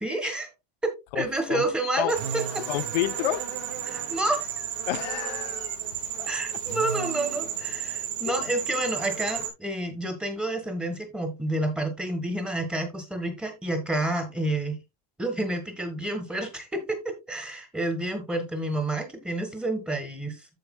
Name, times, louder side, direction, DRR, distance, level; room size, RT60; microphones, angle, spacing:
voice 1, 0.0-0.5 0.8-2.6 3.9-4.7 6.3-14.8 15.2-20.5, right 1 dB, 5° right, 1.6 m, -29 dB
voice 2, 1.1-1.6 2.0-2.1 2.7-3.4 4.9-5.8 6.2-6.6, left 15 dB, 80° left, 0.8 m, -30 dB
sound 1, 2.1-9.5, right 8 dB, 75° right, 2.9 m, -32 dB
14.0 x 4.9 x 2.3 m
supercardioid pair, 160°, 21 cm